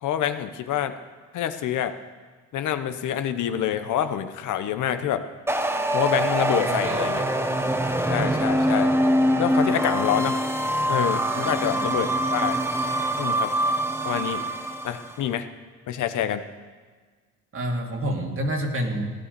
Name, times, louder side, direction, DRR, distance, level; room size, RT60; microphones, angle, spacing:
voice 1, 0.0-1.0 1.3-1.9 2.5-5.3 5.9-7.2 8.1-8.9 9.4-10.3 10.9-12.6 13.2-13.5 14.0-14.4 14.8-15.5 15.9-16.4, left 10 dB, 80° left, 9 dB, 1.0 m, -26 dB
sound 1, 5.5-15.1, right 1 dB, 10° right, 1.3 m, -24 dB
voice 2, 6.5-7.1 7.6-8.0 11.4-12.0 17.5-19.1, right 1 dB, 45° right, 2 dB, 2.5 m, -29 dB
16.0 x 10.0 x 6.8 m, 1.4 s
cardioid pair, 90°, 30 cm